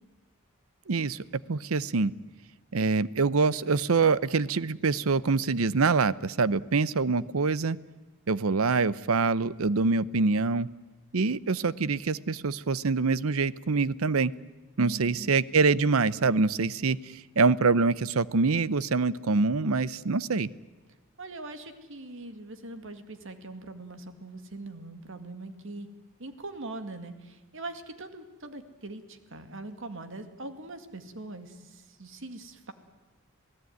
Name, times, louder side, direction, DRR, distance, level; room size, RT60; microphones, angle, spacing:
voice 1, 0.9-1.2 1.5-2.1 2.7-7.8 8.3-10.7 11.1-14.3 14.8-17.0 17.4-20.5, right 4 dB, 85° right, 18 dB, 0.7 m, -25 dB
voice 2, 14.8-15.3 21.2-25.9 26.2-32.7, right 2 dB, 65° right, 8 dB, 2.1 m, -42 dB
27.5 x 17.5 x 9.4 m, 1.2 s
head